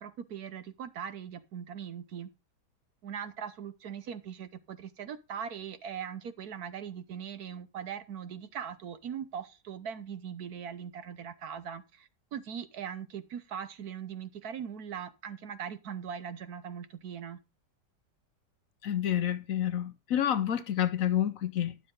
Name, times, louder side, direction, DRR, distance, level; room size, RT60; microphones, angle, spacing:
voice 1, 0.0-2.3 3.0-17.4, right 8 dB, 65° right, 1.3 m, -40 dB
voice 2, 18.8-21.8, left 10 dB, 60° left, 1.0 m, -29 dB
12.0 x 7.7 x 3.8 m
omnidirectional pair, 1.9 m